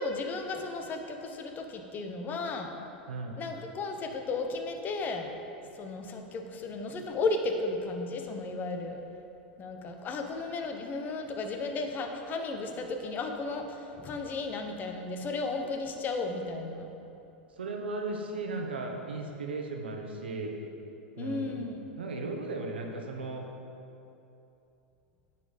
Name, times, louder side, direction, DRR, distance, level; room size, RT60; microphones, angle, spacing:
voice 1, 0.0-2.7 3.4-5.3 5.8-9.0 9.6-16.9 21.2-21.8, left 3 dB, 35° left, 5 dB, 0.9 m, -34 dB
voice 2, 3.1-3.4 17.6-20.5 21.2-21.6 22.0-23.5, right 3 dB, 85° right, 2 dB, 1.0 m, -36 dB
9.8 x 4.3 x 5.1 m, 2.8 s
hypercardioid pair, 100°, 5 cm